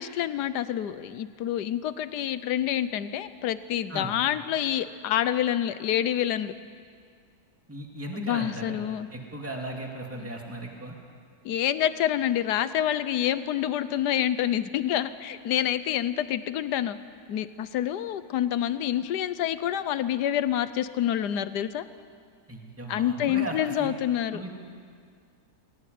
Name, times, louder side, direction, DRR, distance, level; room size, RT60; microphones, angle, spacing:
voice 1, 0.0-6.5 8.2-9.1 10.2-10.3 11.4-17.0 17.3-21.8 22.9-24.4, left 11 dB, 80° left, 14 dB, 1.4 m, -27 dB
voice 2, 7.7-8.8 9.1-11.0 22.5-23.9 24.3-24.5, right 1 dB, 10° right, 0 dB, 2.4 m, -37 dB
20.0 x 18.0 x 9.3 m, 2.1 s
omnidirectional pair, 1.8 m